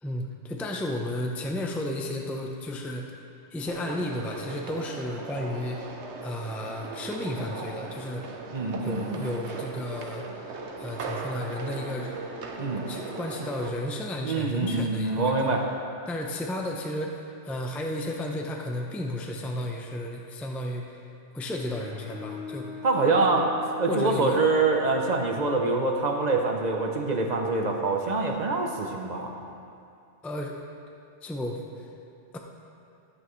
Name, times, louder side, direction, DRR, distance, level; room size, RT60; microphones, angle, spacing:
voice 1, 0.0-3.1 3.5-5.8 6.2-8.3 8.8-10.3 10.8-12.2 12.9-15.4 16.1-21.0 21.3-22.8 23.9-24.4 30.2-30.6 31.2-31.9, left 1 dB, ahead, 1 dB, 0.4 m, -33 dB
sound 1, 3.7-13.7, right 3 dB, 70° right, 1.1 m, -38 dB
voice 2, 8.5-9.2 12.6-12.8 14.2-15.6 22.8-23.5 23.8-29.3, right 3 dB, 40° right, 2 dB, 0.8 m, -25 dB
Bowed string instrument, 21.6-25.8, left 3 dB, 60° left, 1.8 m, -41 dB
13.5 x 8.2 x 3.2 m, 2.5 s
omnidirectional pair, 1.2 m